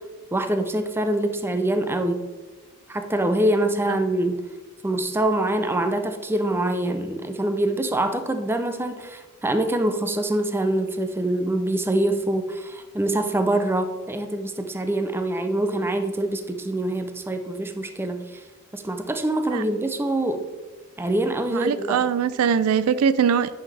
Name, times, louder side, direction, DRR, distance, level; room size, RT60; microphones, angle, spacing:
voice 1, 0.3-2.2 2.9-4.4 4.8-18.4 18.7-20.5 21.0-22.0, right 1 dB, 10° right, 7 dB, 0.4 m, -25 dB
voice 2, 21.5-23.5, right 7 dB, 85° right, 15 dB, 0.4 m, -22 dB
9.4 x 5.6 x 3.4 m, 1.3 s
head